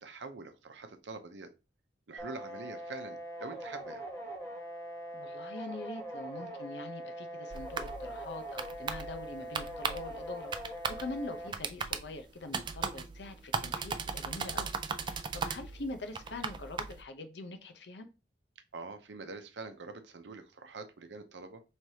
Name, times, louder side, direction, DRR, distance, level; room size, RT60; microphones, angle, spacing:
voice 1, 0.0-1.5 2.1-4.0 18.7-21.6, right 3 dB, 75° right, 0.7 m, -45 dB
sound 1, 2.2-11.5, right 1 dB, 15° left, 1.1 m, -42 dB
voice 2, 5.1-10.5 10.9-14.7 15.0-18.1, left 2 dB, 65° left, 0.7 m, -43 dB
sound 2, 7.5-17.0, right 5 dB, 25° right, 0.3 m, -38 dB
4.7 x 3.3 x 2.8 m
head